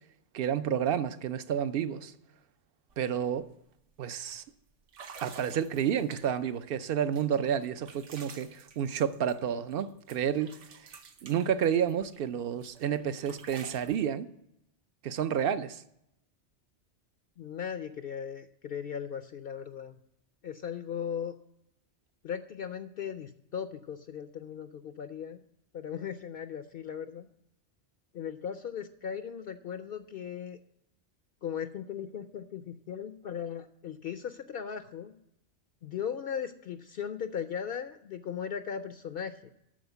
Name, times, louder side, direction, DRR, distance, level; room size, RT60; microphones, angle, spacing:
voice 1, 0.3-2.1 3.0-3.5 4.0-4.4 5.2-10.9 11.2-14.3 15.0-15.8, right 8 dB, 60° right, 0.7 m, -30 dB
sound 1, 2.9-3.0 3.4-3.7 4.3-4.4 4.9-6.5 7.1-9.8 10.1-12.2 12.6-14.0, right 5 dB, 80° right, 1.2 m, -50 dB
voice 2, 17.4-20.0 20.4-21.3 22.2-25.4 25.7-27.3 28.1-30.6 31.4-35.1 35.8-39.5, left 8 dB, 60° left, 0.7 m, -38 dB
12.5 x 4.3 x 8.0 m
omnidirectional pair, 1.2 m